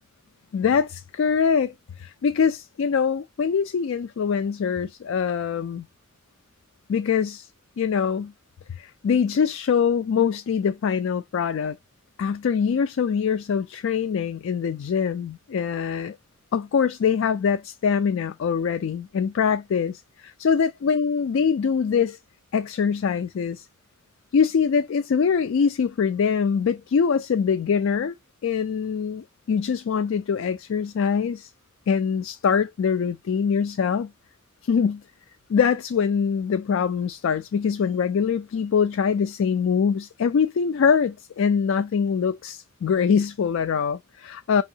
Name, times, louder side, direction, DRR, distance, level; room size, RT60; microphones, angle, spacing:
voice 1, 0.5-5.9 6.9-7.5 7.8-8.3 8.8-11.8 12.2-16.2 16.5-22.2 22.5-23.7 24.3-28.1 28.4-31.5 31.9-34.1 34.6-35.0 35.5-44.6, left 6 dB, 70° left, 0.3 m, -23 dB
5.3 x 2.9 x 2.7 m
head